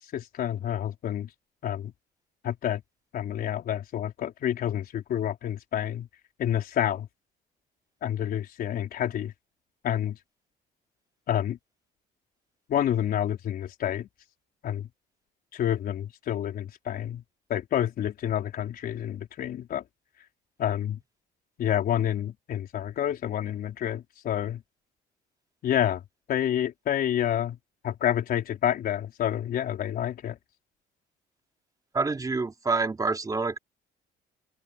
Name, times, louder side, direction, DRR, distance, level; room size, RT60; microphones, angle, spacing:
voice 1, 0.1-1.3 1.6-1.9 2.4-2.8 3.1-6.1 6.4-7.1 8.0-9.3 9.8-10.2 11.3-11.6 12.7-14.1 14.6-14.9 15.5-17.2 17.5-19.8 20.6-21.0 21.6-24.6 25.6-26.0 26.3-27.6 27.8-30.4, left 10 dB, 60° left, 4.5 m, -28 dB
voice 2, 31.9-33.6, right 4 dB, 20° right, 3.9 m, -27 dB
open air
cardioid pair, 110°, 17 cm